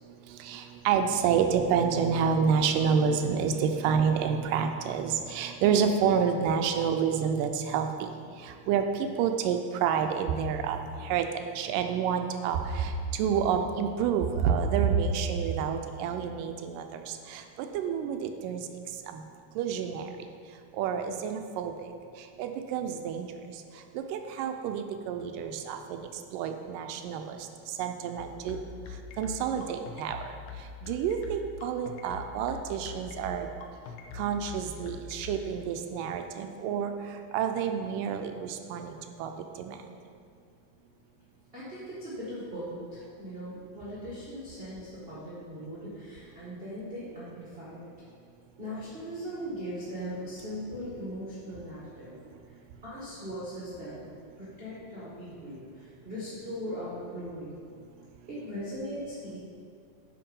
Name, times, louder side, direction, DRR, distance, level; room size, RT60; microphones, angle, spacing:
voice 1, 0.4-8.1 8.7-8.8 9.2-11.3 11.6-12.9 13.2-17.0 17.3-18.6 19.1-19.2 19.6-20.1 20.8-21.7 22.4-23.3 24.0-26.0 26.3-27.4 27.8-28.6 29.2-30.2 30.8-33.5 34.2-36.9 37.3-39.3 39.6-39.8, right 7 dB, 85° right, 6 dB, 2.2 m, -28 dB
sound 1, 28.2-35.4, left 6 dB, 75° left, 2.0 m, -42 dB
voice 2, 41.5-47.8 48.6-52.2 52.8-54.1 54.4-57.5 58.3-59.4, equal, 25° right, -9 dB, 1.2 m, -39 dB
8.5 x 5.4 x 5.3 m, 2.3 s
omnidirectional pair, 3.8 m